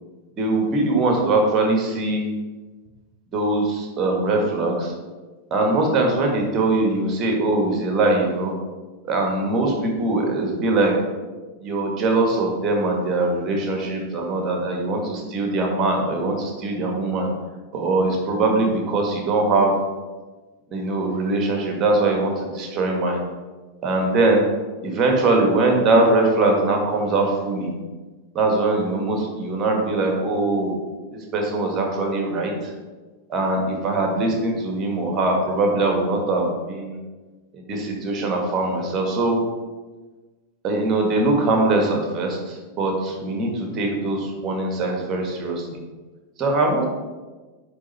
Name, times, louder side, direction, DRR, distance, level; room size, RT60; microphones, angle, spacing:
voice 1, 0.4-2.2 3.3-4.9 5.5-8.5 9.0-10.9 11.6-17.3 17.7-19.7 20.7-23.2 23.8-24.4 24.8-27.7 28.3-30.7 31.3-32.5 33.3-37.0 37.5-39.4 40.6-45.8 46.4-46.9, right 2 dB, 30° right, 1 dB, 1.6 m, -22 dB
9.3 x 3.8 x 4.2 m, 1.3 s
figure-of-eight pair, 90°, 0 cm